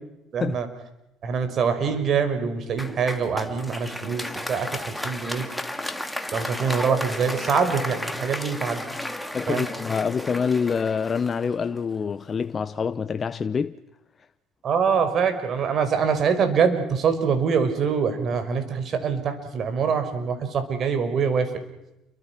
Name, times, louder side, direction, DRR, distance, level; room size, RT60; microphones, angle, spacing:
voice 1, 0.3-0.7 1.2-5.5 6.3-8.9 9.5-9.7 14.6-21.5, right 6 dB, 50° right, 5.1 m, -24 dB
Applause, 2.8-12.1, left 1 dB, 5° left, 2.2 m, -33 dB
voice 2, 9.3-13.8, left 6 dB, 35° left, 0.8 m, -26 dB
29.5 x 24.0 x 6.0 m
supercardioid pair, 95°, 0 cm